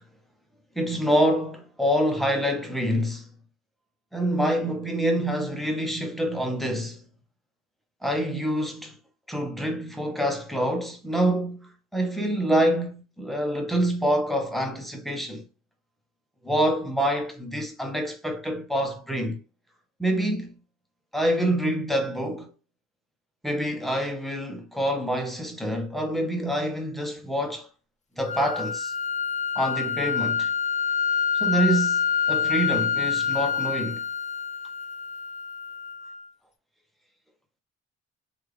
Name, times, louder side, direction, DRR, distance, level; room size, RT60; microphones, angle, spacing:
voice 1, 0.8-3.3 4.1-7.0 8.0-9.0 9.3-15.4 16.4-19.4 20.0-20.6 21.1-22.5 23.4-27.7 28.2-28.9 29.5-30.5 31.3-32.0 32.3-34.0, equal, ahead, 0.8 m, -26 dB
sound 1, 28.3-36.3, left 7 dB, 25° left, 0.3 m, -27 dB
3.2 x 2.5 x 3.2 m
cardioid pair, 90°, 30 cm